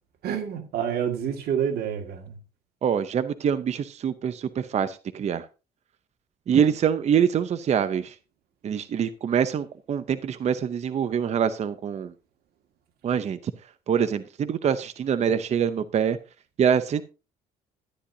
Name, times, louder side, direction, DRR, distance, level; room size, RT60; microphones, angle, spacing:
voice 1, 0.2-2.3, right 8 dB, 65° right, 2.1 m, -28 dB
voice 2, 2.8-5.5 6.5-8.1 8.6-12.1 13.0-13.5 13.9-16.2 16.6-17.0, right 8 dB, 40° right, 0.7 m, -25 dB
13.0 x 9.9 x 2.8 m
cardioid pair, 110°, 17 cm